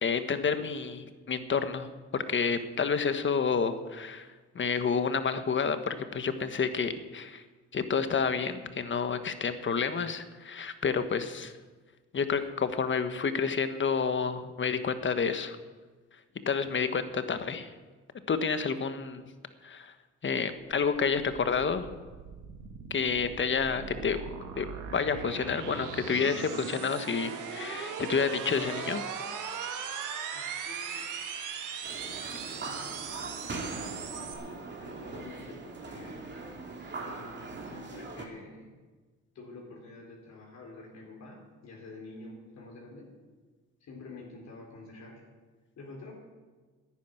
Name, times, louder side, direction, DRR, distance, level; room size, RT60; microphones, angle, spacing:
voice 1, 0.0-4.3 4.5-7.4 7.7-11.5 12.1-15.6 16.5-17.7 18.3-19.2 19.6-19.9 20.2-21.9 22.9-24.2 24.6-24.7 24.9-29.0, left 5 dB, 40° left, 10 dB, 1.3 m, -29 dB
voice 2, 16.3-16.7 30.3-31.1 32.6-34.3 34.8-36.2 36.9-38.7 39.3-43.1 43.8-45.2 45.8-46.1, left 2 dB, 60° left, -2 dB, 3.8 m, -48 dB
sound 1, 20.7-34.3, right 6 dB, 85° right, 1.8 m, -39 dB
sound 2, 31.8-38.3, right 3 dB, 35° right, 2.5 m, -41 dB
10.5 x 10.5 x 9.1 m, 1.4 s
cardioid pair, 90°, 30 cm